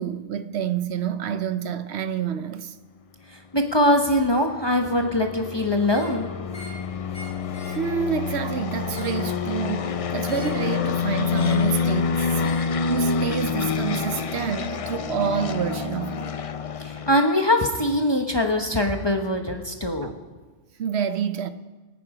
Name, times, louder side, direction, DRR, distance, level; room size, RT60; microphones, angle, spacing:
voice 1, 0.0-2.7 7.7-16.3 20.0-20.1 20.8-21.5, right 7 dB, 65° right, 1.0 m, -28 dB
voice 2, 3.5-6.3 16.8-20.1, left 1 dB, 20° left, 1.1 m, -22 dB
sound 1, 3.9-17.2, left 5 dB, 50° left, 0.4 m, -27 dB
sound 2, 5.8-6.2 6.5-6.8 7.1-7.8 8.7-9.2 10.2-10.6 11.3-11.7 12.4-12.7 13.9-14.1, equal, 5° left, 3.4 m, -44 dB
23.5 x 9.3 x 5.0 m
omnidirectional pair, 1.2 m